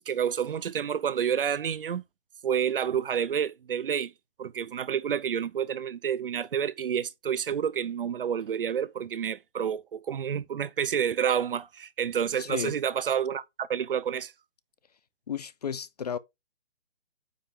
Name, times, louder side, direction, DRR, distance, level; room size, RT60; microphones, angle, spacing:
voice 1, 0.0-2.0 2.4-4.1 4.4-14.3, right 8 dB, 50° right, 0.7 m, -29 dB
voice 2, 12.4-12.7 15.3-16.2, left 8 dB, 35° left, 0.5 m, -33 dB
9.1 x 3.5 x 5.1 m
figure-of-eight pair, 145°, 34 cm